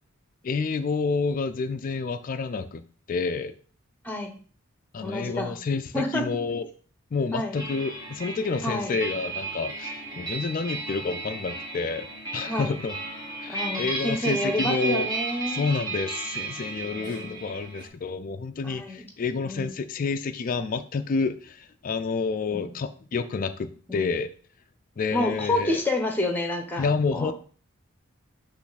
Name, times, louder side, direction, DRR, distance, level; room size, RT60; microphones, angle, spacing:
voice 1, 0.4-3.5 4.9-6.7 7.1-12.1 12.3-13.0 13.4-15.1 15.5-24.3 25.0-25.8 26.8-27.3, left 4 dB, 40° left, 8 dB, 0.4 m, -29 dB
voice 2, 5.0-5.5 5.9-6.2 7.3-7.6 8.6-8.9 12.4-12.7 13.5-15.7 16.8-17.6 18.6-19.0 19.4-19.7 22.5-22.7 23.9-24.1 25.1-26.8 27.1-27.3, left 1 dB, 10° left, 5 dB, 0.9 m, -29 dB
sound 1, 7.5-17.9, right 3 dB, 20° right, 1.4 m, -34 dB
8.2 x 3.2 x 4.0 m, 0.41 s
head